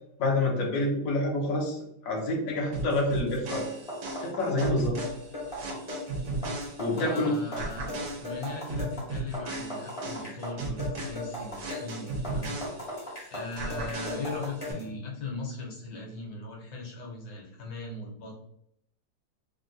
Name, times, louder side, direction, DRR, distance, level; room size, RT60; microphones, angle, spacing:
voice 1, 0.2-3.7 4.2-5.0 6.8-7.3, left 2 dB, 80° left, -1 dB, 0.7 m, -28 dB
sound 1, 2.7-7.2 7.6-13.2 13.6-14.7, right 2 dB, 70° right, 1.1 m, -36 dB
sound 2, 3.3-14.9, left 1 dB, 35° left, 0.5 m, -38 dB
voice 2, 7.0-12.6 13.3-18.4, left 3 dB, 65° left, -1 dB, 1.2 m, -39 dB
3.6 x 2.2 x 2.6 m, 0.72 s
omnidirectional pair, 2.4 m